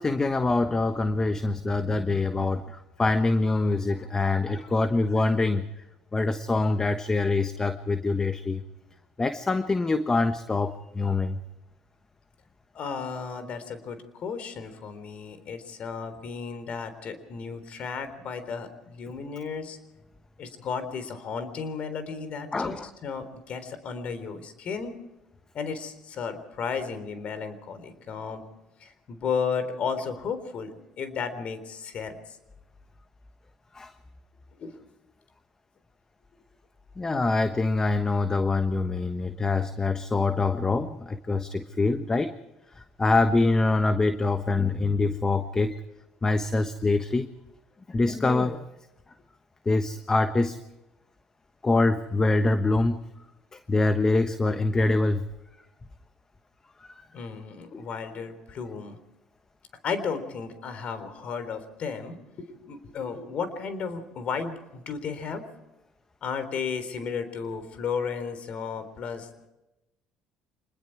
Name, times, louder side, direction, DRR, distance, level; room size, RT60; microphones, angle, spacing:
voice 1, 0.0-5.7 6.1-8.6 9.2-11.4 22.5-22.9 33.7-33.9 37.0-42.3 43.0-45.8 46.2-47.3 47.9-48.6 49.6-50.6 51.6-53.0 53.7-55.2 57.7-57.8, left 3 dB, 25° left, 9 dB, 1.2 m, -24 dB
voice 2, 12.7-19.8 20.4-24.9 25.5-28.4 28.8-32.2 34.6-34.7 57.1-59.0 59.8-62.2 62.6-65.4 66.2-69.5, left 5 dB, 55° left, 11 dB, 3.9 m, -34 dB
26.0 x 21.0 x 4.8 m, 0.98 s
supercardioid pair, 80°, 3 cm